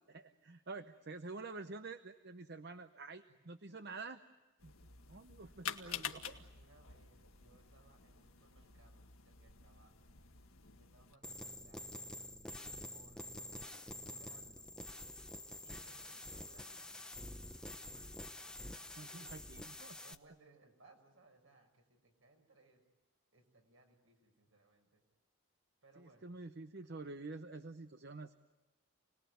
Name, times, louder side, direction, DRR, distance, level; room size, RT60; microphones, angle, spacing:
voice 1, 0.1-4.2 4.6-4.7 5.1-6.4 17.9-18.1 18.6-20.1 26.0-28.3, right 3 dB, 50° right, 9 dB, 0.9 m, -48 dB
sound 1, 4.6-11.1, left 8 dB, 80° left, 1.8 m, -49 dB
voice 2, 5.8-10.1 10.6-12.0 12.5-13.6 14.0-14.7 15.6-17.1 18.9-19.4 20.0-22.8 23.3-25.0 25.8-26.3, right 2 dB, 70° right, 4 dB, 5.7 m, -67 dB
sound 2, 11.2-20.1, left 1 dB, 5° left, 0.9 m, -48 dB
29.5 x 20.0 x 9.4 m, 1.1 s
head